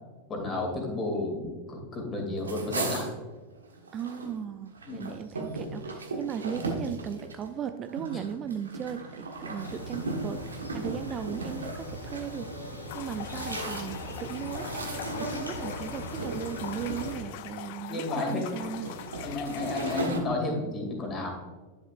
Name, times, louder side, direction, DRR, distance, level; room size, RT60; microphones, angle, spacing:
voice 1, 0.3-3.1 4.9-5.1 17.9-18.5 19.2-21.3, left 2 dB, 25° left, 1 dB, 2.5 m, -32 dB
sound 1, 2.4-4.3 4.7-12.3 12.9-14.1 14.5-15.7 16.2-16.4 16.8-17.6 18.2-20.2, right 3 dB, 75° right, 1.3 m, -37 dB
voice 2, 3.9-14.7 15.2-18.9, right 8 dB, 30° right, 9 dB, 0.4 m, -37 dB
sound 2, 9.6-17.1, equal, 85° left, 2.2 m, -38 dB
sound 3, 12.9-20.1, left 13 dB, 50° left, 0.5 m, -43 dB
11.0 x 7.2 x 2.5 m, 1.3 s
figure-of-eight pair, 90°, 0 cm